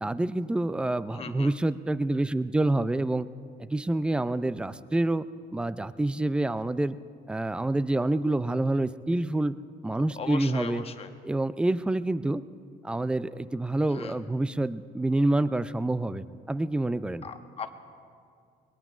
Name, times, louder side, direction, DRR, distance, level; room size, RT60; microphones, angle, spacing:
voice 1, 0.0-3.3 3.6-5.3 5.5-7.0 7.3-9.6 9.8-10.8 11.2-12.4 12.8-17.3, right 2 dB, 5° right, 15 dB, 0.3 m, -27 dB
voice 2, 1.1-1.5 10.2-11.1 13.9-14.2 17.2-17.7, left 6 dB, 35° left, 7 dB, 0.9 m, -38 dB
22.0 x 20.0 x 2.5 m, 2.3 s
cardioid pair, 110°, 17 cm